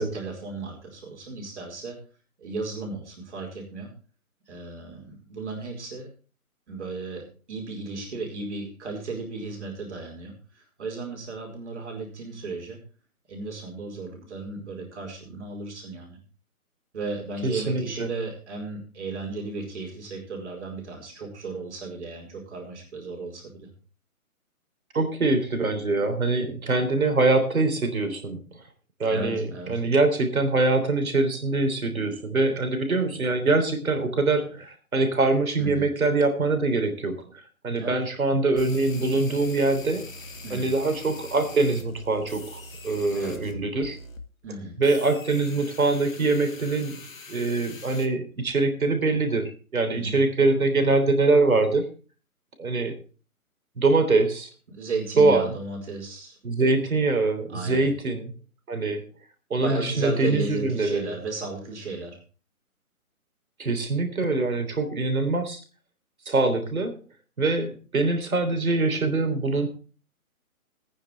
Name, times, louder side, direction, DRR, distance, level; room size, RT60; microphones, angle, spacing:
voice 1, 0.0-2.0 2.4-3.9 4.5-6.1 6.7-12.8 13.3-16.2 16.9-23.7 29.1-29.8 35.6-35.9 37.8-38.0 40.4-40.7 43.1-43.4 44.4-44.8 49.9-50.2 54.7-56.4 57.5-57.9 59.6-62.2, right 3 dB, 50° right, 1 dB, 4.8 m, -35 dB
voice 2, 17.4-18.1 24.9-28.5 29.0-40.1 40.5-44.0 44.8-47.0 47.3-51.9 52.6-53.0 53.8-54.5 55.2-55.5 56.4-58.3 58.7-59.0 59.5-61.1 63.6-65.6 66.3-67.0 67.4-69.7, right 3 dB, 70° right, 7 dB, 3.5 m, -24 dB
sound 1, 38.6-43.5 43.8-44.2 44.8-48.1, left 2 dB, 65° left, 2.1 m, -43 dB
19.0 x 9.6 x 3.3 m, 0.37 s
figure-of-eight pair, 145°, 43 cm